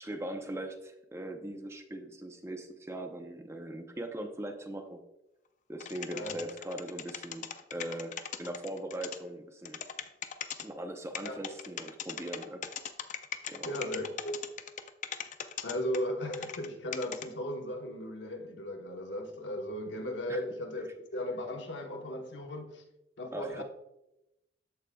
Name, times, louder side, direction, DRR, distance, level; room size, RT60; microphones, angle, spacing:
voice 1, 0.0-5.0 5.7-9.8 10.6-12.7 13.5-13.7 20.3-20.4 23.3-23.6, right 1 dB, 15° right, 0.6 m, -40 dB
sound 1, 5.8-9.2 9.6-10.6 11.1-16.7 16.9-17.3, left 8 dB, 40° left, 0.4 m, -39 dB
voice 2, 13.6-14.5 15.6-22.8 23.2-23.6, left 1 dB, 80° left, 1.1 m, -36 dB
13.5 x 4.8 x 2.3 m
head